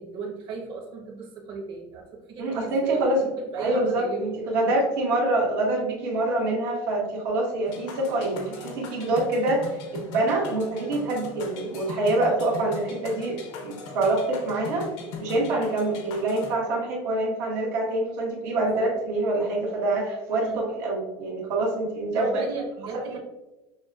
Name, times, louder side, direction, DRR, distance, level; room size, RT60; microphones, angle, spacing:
voice 1, 0.0-4.3 10.7-11.1 18.6-18.9 20.4-20.6 22.1-23.2, right 4 dB, 50° right, 0 dB, 1.0 m, -34 dB
voice 2, 2.4-3.2 3.6-14.9 15.2-22.4, right 2 dB, 80° right, -3 dB, 1.3 m, -26 dB
sound 1, 7.7-16.6, left 4 dB, 65° left, 0.7 m, -40 dB
6.1 x 2.3 x 2.3 m, 1.0 s
supercardioid pair, 130°, 10 cm